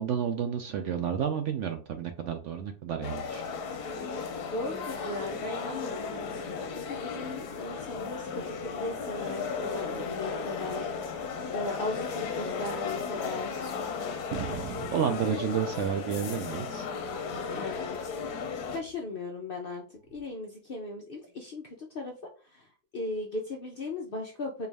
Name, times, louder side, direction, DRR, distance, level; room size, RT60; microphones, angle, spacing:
voice 1, 0.0-3.4 14.9-16.9, right 8 dB, 70° right, 6 dB, 0.7 m, -30 dB
sound 1, 3.0-18.8, left 5 dB, 85° left, 1.3 m, -35 dB
voice 2, 4.5-6.0 6.7-10.9 11.5-13.7 17.5-18.0 18.7-22.1 22.4-22.7 22.9-24.7, left 2 dB, 60° left, 1 dB, 0.6 m, -37 dB
sound 2, 14.3-16.5 16.9-17.8 18.7-19.1 20.1-20.2, right 8 dB, 90° right, 1.2 m, -42 dB
4.5 x 2.4 x 3.3 m, 0.39 s
omnidirectional pair, 1.6 m